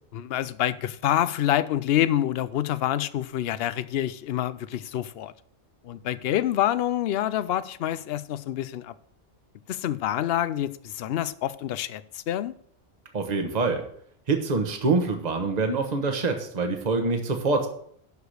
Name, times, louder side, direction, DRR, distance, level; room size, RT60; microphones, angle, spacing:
voice 1, 0.1-5.3 5.8-8.9 9.7-12.5, left 12 dB, 65° left, 0.7 m, -27 dB
voice 2, 13.1-13.9 14.3-17.7, right 3 dB, 40° right, 1.3 m, -25 dB
11.5 x 4.9 x 6.5 m
omnidirectional pair, 1.2 m